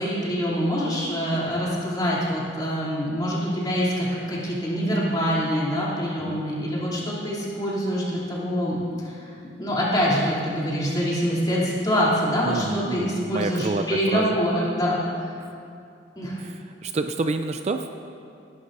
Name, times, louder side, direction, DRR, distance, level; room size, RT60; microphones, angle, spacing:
voice 1, 0.0-15.3 16.2-16.4, equal, 25° left, -7 dB, 3.1 m, -25 dB
voice 2, 12.4-14.4 16.4-17.9, right 3 dB, 40° right, 7 dB, 0.4 m, -28 dB
19.0 x 11.5 x 2.7 m, 2.5 s
head